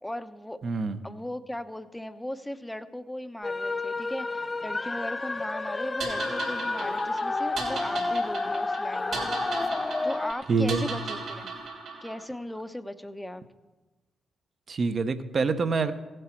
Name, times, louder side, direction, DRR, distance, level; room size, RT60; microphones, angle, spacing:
voice 1, 0.0-0.6 1.0-9.5 10.0-11.5 12.0-13.4, left 1 dB, 10° left, 10 dB, 0.8 m, -37 dB
voice 2, 0.6-1.0 10.5-10.8 14.7-15.9, right 4 dB, 50° right, 10 dB, 0.9 m, -26 dB
sound 1, 3.4-10.3, left 3 dB, 30° left, 0.3 m, -30 dB
sound 2, 6.0-12.2, right 4 dB, 75° right, 3.2 m, -37 dB
16.0 x 7.9 x 4.5 m, 1.2 s
supercardioid pair, 50°, 0 cm